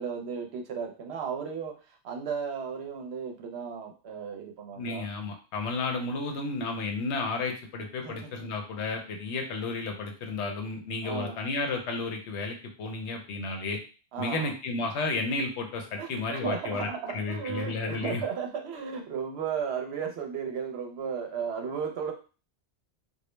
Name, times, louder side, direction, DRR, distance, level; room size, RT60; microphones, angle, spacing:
voice 1, 0.0-5.1 8.0-8.5 11.0-11.4 14.1-14.5 16.0-22.1, right 6 dB, 70° right, 3 dB, 0.8 m, -35 dB
voice 2, 4.8-13.8 14.2-16.9 17.1-18.2, left 3 dB, 80° left, 3 dB, 0.9 m, -32 dB
2.3 x 2.0 x 3.0 m, 0.35 s
omnidirectional pair, 1.2 m